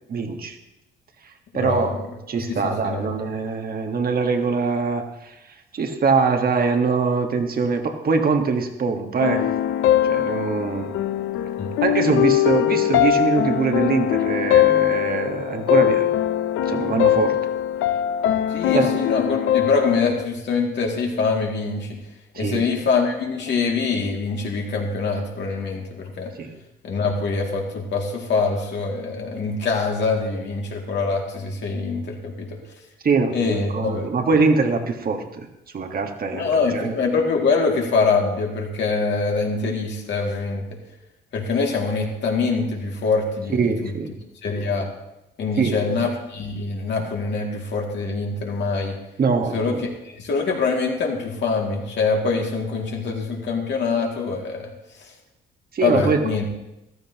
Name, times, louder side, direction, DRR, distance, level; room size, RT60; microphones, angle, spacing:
voice 1, 0.1-0.6 1.5-2.0 2.3-5.4 5.7-9.5 10.0-10.9 11.8-16.1 16.6-17.4 18.7-18.9 22.3-22.6 26.4-26.5 33.0-35.5 35.7-36.9 43.5-44.1 45.6-46.0 49.2-49.8 55.7-56.3, right 4 dB, 50° right, 5 dB, 1.5 m, -23 dB
voice 2, 1.5-2.0 2.4-3.1 11.6-11.7 18.5-22.0 22.4-26.3 26.8-32.6 33.3-34.1 36.3-40.7 41.3-43.9 44.4-44.9 45.4-49.0 49.5-49.8 50.0-54.7 55.8-56.4, left 4 dB, 65° left, 0 dB, 2.4 m, -24 dB
sound 1, 9.2-20.2, left 10 dB, 85° left, 0.6 m, -21 dB
14.0 x 13.0 x 2.9 m, 0.91 s
cardioid pair, 90°, 20 cm